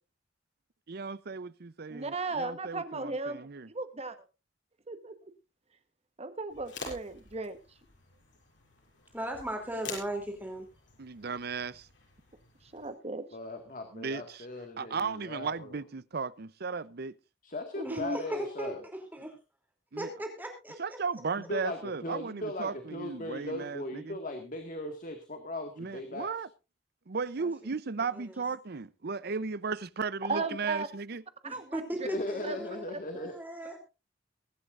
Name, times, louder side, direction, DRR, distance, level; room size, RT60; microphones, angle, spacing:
voice 1, 0.9-3.7 11.0-11.9 13.9-14.5 14.8-17.1 19.9-20.1 20.8-24.2 25.8-26.5 27.1-31.2, right 5 dB, 60° right, 0.7 m, -36 dB
voice 2, 1.9-4.1 4.9-5.3 6.2-7.6 12.7-13.2 17.8-18.2 30.3-30.9 31.4-31.8 32.4-32.6 32.9-33.0, right 3 dB, 35° right, 1.2 m, -36 dB
sound 1, 6.5-12.9, left 4 dB, 85° left, 6.8 m, -47 dB
voice 3, 9.1-10.7 17.8-19.4 20.0-21.0 27.4-27.5 28.1-28.4 31.4-32.8 33.1-33.8, right 1 dB, 10° right, 3.0 m, -38 dB
voice 4, 13.3-15.8 17.4-18.8 21.4-26.3 32.0-33.3, left 1 dB, 45° left, 1.9 m, -38 dB
23.0 x 11.5 x 2.5 m
head